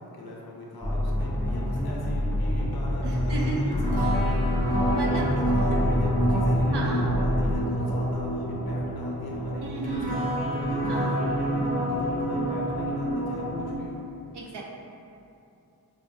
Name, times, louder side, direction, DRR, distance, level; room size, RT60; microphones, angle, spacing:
voice 1, 0.0-4.4 4.7-14.0, equal, 65° left, -3 dB, 0.5 m, -40 dB
sound 1, 0.8-7.5, left 1 dB, 5° left, 0.3 m, -27 dB
voice 2, 3.0-3.7 4.9-5.2 5.7-5.8 6.7-7.1 9.6-10.2 10.9-11.1 14.3-14.6, right 3 dB, 80° right, -3 dB, 0.6 m, -34 dB
sound 2, 3.7-13.7, equal, 20° right, 0.7 m, -27 dB
4.5 x 2.1 x 2.6 m, 2.7 s
wide cardioid pair, 60°, 40 cm